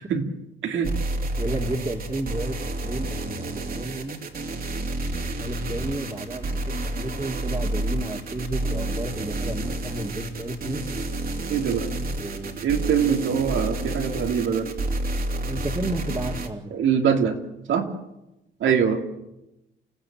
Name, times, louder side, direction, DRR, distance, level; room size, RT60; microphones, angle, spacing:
sound 1, 0.8-16.5, right 1 dB, 45° right, 3.1 m, -30 dB
voice 1, 1.2-2.6 2.8-4.2 5.4-10.8 12.1-12.6 15.5-16.7, right 1 dB, 20° right, -2 dB, 2.6 m, -32 dB
voice 2, 11.5-11.9 12.6-14.7 16.7-17.4 17.7-17.9 18.6-19.0, right 7 dB, 75° right, 4 dB, 2.9 m, -23 dB
28.0 x 15.5 x 8.9 m, 0.92 s
cardioid pair, 90°, 20 cm